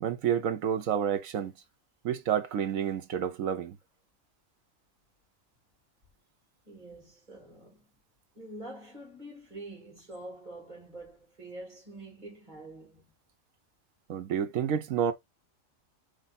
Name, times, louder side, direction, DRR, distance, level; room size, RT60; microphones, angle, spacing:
voice 1, 0.0-1.5 2.0-3.8 14.1-15.1, right 8 dB, 90° right, 1.2 m, -29 dB
voice 2, 6.7-7.9 8.3-13.0, right 1 dB, 35° right, 2.2 m, -46 dB
3.4 x 3.3 x 4.0 m
omnidirectional pair, 1.4 m